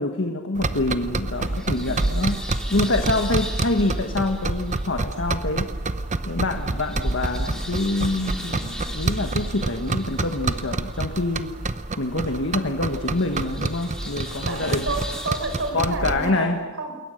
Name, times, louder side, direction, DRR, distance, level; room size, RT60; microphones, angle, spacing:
voice 1, 0.0-5.7 6.3-11.5 12.0-14.9 15.7-16.6, left 2 dB, 60° left, 5 dB, 1.5 m, -26 dB
sound 1, 0.6-16.3, right 2 dB, 35° right, 0.9 m, -28 dB
sound 2, 1.0-15.7, left 1 dB, 5° left, 3.9 m, -40 dB
voice 2, 1.7-2.4 14.5-17.0, right 2 dB, 60° right, 6 dB, 4.8 m, -31 dB
28.0 x 21.5 x 6.7 m, 1.3 s
head